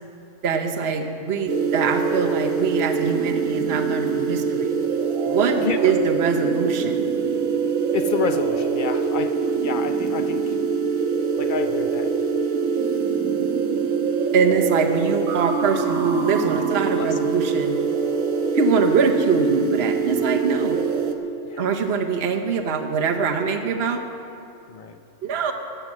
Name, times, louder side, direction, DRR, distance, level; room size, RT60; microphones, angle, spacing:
voice 1, 0.4-4.7 5.2-5.6 5.8-7.0 14.3-17.8 18.5-20.8 21.6-24.0 25.2-25.5, right 5 dB, 55° right, 4 dB, 1.1 m, -23 dB
sound 1, 1.5-21.1, right 6 dB, 85° right, 1.3 m, -24 dB
voice 2, 5.6-5.9 7.9-10.6 11.4-12.1 16.4-17.2 21.4-21.7 24.7-25.0, left 6 dB, 50° left, 8 dB, 0.7 m, -29 dB
14.0 x 7.9 x 7.3 m, 2.6 s
omnidirectional pair, 1.4 m